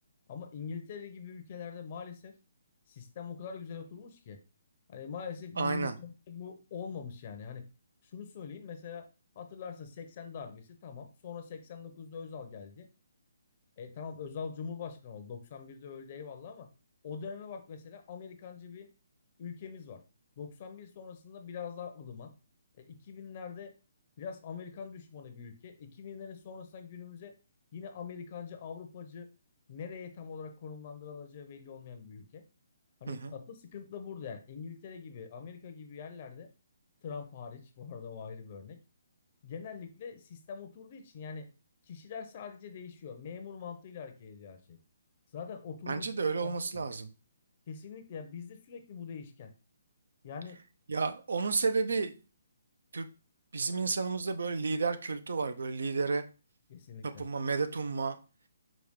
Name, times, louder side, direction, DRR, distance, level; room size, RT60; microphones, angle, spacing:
voice 1, 0.3-2.4 2.9-4.4 4.9-7.7 8.1-9.1 9.4-12.9 13.8-16.7 17.0-18.9 19.4-20.0 20.4-22.3 22.8-23.7 24.2-27.4 27.7-29.3 29.7-32.4 33.0-36.5 37.0-38.8 39.4-41.5 41.8-44.8 45.3-46.8 47.7-49.5 50.2-50.6 56.7-57.3, left 6 dB, 40° left, 7 dB, 0.7 m, -43 dB
voice 2, 5.6-5.9 33.1-33.3 45.9-47.1 50.9-52.2 52.9-53.1 53.5-56.2 57.0-58.2, right 4 dB, 75° right, 9 dB, 0.6 m, -31 dB
5.0 x 2.3 x 3.6 m, 0.33 s
hypercardioid pair, 160°, 0 cm